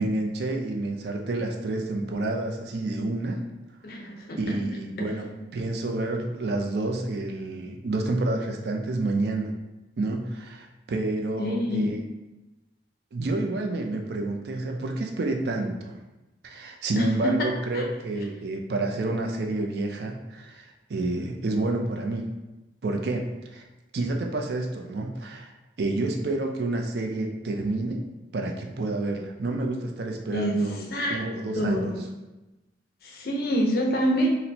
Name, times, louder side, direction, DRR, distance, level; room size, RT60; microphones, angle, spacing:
voice 1, 0.0-3.4 4.4-9.5 10.0-12.0 13.1-15.9 16.4-22.2 22.8-23.6 23.9-25.5 25.8-28.0 28.3-30.8 31.1-31.9, right 2 dB, 65° right, 2 dB, 0.4 m, -29 dB
voice 2, 3.8-4.6 11.4-11.9 17.0-17.5 17.7-17.8 30.3-30.6 30.9-31.2 31.5-32.0 33.0-34.3, equal, 55° left, 0 dB, 0.6 m, -26 dB
4.1 x 2.0 x 2.8 m, 1.0 s
head